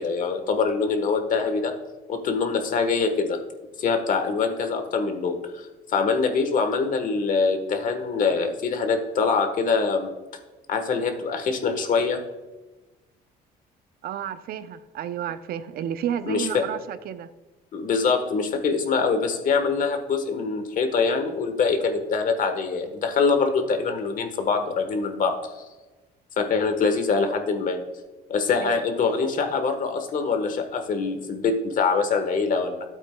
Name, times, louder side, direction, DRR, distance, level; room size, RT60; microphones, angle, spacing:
voice 1, 0.0-1.7 2.1-3.4 3.8-5.6 5.9-10.1 10.7-12.2 16.3-16.6 17.7-25.6 26.4-27.8 28.3-32.8, left 4 dB, 50° left, 6 dB, 1.3 m, -24 dB
voice 2, 14.0-17.3 28.6-28.7, right 9 dB, 65° right, 13 dB, 0.6 m, -31 dB
12.5 x 8.3 x 2.2 m, 1.2 s
cardioid pair, 110°, 17 cm